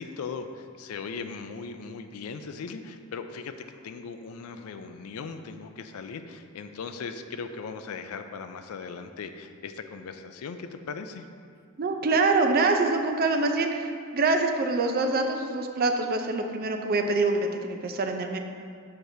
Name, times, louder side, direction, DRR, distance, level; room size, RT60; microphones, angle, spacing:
voice 1, 0.0-11.3, left 5 dB, 90° left, 8 dB, 0.4 m, -38 dB
voice 2, 11.8-18.4, right 3 dB, 45° right, 5 dB, 0.4 m, -25 dB
6.5 x 5.8 x 2.7 m, 2.3 s
head